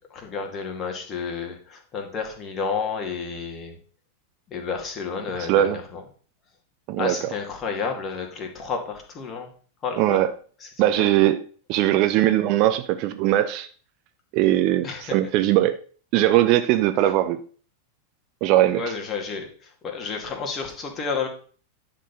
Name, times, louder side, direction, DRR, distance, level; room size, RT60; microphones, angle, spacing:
voice 1, 0.1-3.8 4.5-6.0 7.0-9.5 9.8-10.2 10.6-10.7 10.9-11.1 14.8-15.2 18.7-21.3, left 5 dB, 25° left, 2.2 m, -31 dB
voice 2, 5.4-5.8 6.9-7.3 10.0-10.3 10.8-11.4 11.7-13.7 14.3-15.8 16.1-17.4 18.4-18.8, right 13 dB, 40° right, 0.6 m, -20 dB
10.0 x 4.5 x 5.3 m
figure-of-eight pair, 90°, 0 cm